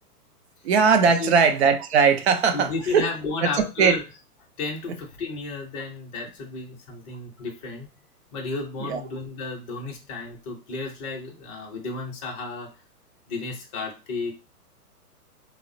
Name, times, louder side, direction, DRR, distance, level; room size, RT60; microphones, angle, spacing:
voice 1, 0.6-3.1 3.4-4.0 8.8-9.0, right 5 dB, 45° right, 0.5 m, -20 dB
voice 2, 2.5-4.0 4.6-7.9 8.3-12.7 13.3-14.3, left 4 dB, 20° left, 0.6 m, -33 dB
3.4 x 2.0 x 2.5 m
figure-of-eight pair, 120°, 47 cm